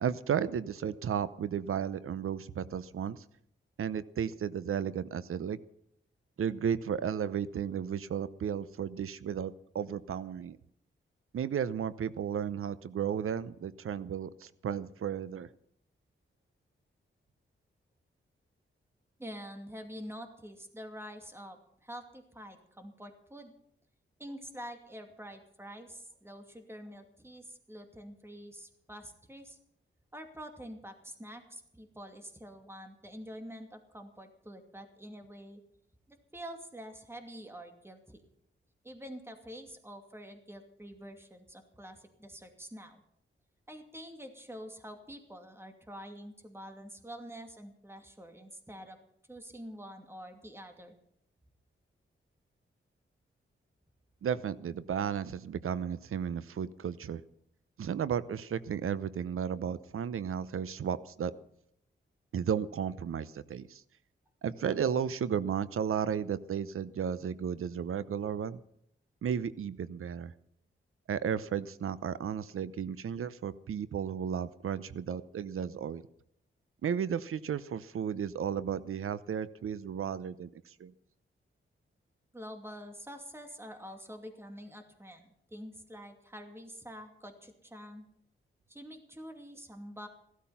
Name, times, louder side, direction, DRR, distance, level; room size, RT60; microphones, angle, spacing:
voice 1, 0.0-3.2 3.8-5.6 6.4-10.6 11.3-15.5 54.2-57.2 57.8-61.3 62.3-63.8 64.4-68.6 69.2-70.3 71.1-76.0 76.8-80.5 80.8-80.9, right 8 dB, 85° right, 16 dB, 0.8 m, -34 dB
voice 2, 19.2-23.5 24.2-29.6 30.1-35.6 36.1-38.2 38.8-43.0 43.7-49.0 49.3-51.0 82.3-88.0 88.7-90.1, equal, 10° right, 6 dB, 2.6 m, -47 dB
15.5 x 13.0 x 5.8 m, 0.71 s
wide cardioid pair, 100°, 21 cm